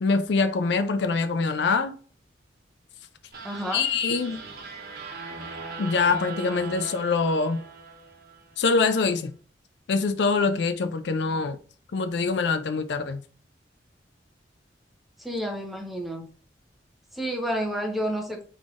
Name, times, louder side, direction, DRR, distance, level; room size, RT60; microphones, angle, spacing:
voice 1, 0.0-2.0 3.7-4.4 5.8-7.6 8.6-9.3 9.9-11.6 11.9-13.2, left 4 dB, 65° left, 0.4 m, -24 dB
sound 1, 3.3-8.6, right 3 dB, 55° right, 1.2 m, -39 dB
voice 2, 3.4-3.9 15.2-16.2 17.1-18.4, equal, ahead, 1.0 m, -30 dB
5.1 x 3.6 x 2.5 m
head